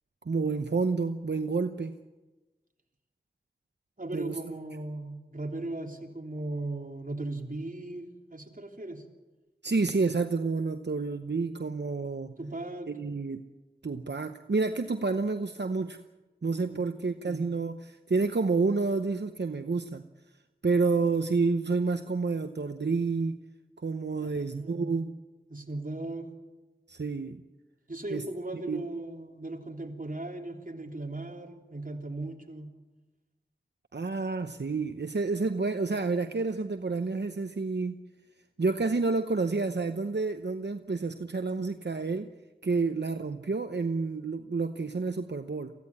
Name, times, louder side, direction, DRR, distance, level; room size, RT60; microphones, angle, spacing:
voice 1, 0.2-2.0 4.1-4.4 9.6-12.3 12.9-13.4 13.8-16.0 16.4-20.0 20.6-23.4 23.8-25.2 26.9-27.4 28.1-28.2 28.7-28.9 33.9-38.0 38.6-42.3 42.6-45.7, right 4 dB, 80° right, 8 dB, 0.9 m, -29 dB
voice 2, 4.0-9.0 12.4-12.9 16.7-16.8 17.2-17.4 24.2-24.3 24.6-24.9 25.5-26.3 27.9-32.7, right 2 dB, 50° right, 2 dB, 3.4 m, -37 dB
24.0 x 16.0 x 9.7 m, 1.2 s
wide cardioid pair, 45°, 17 cm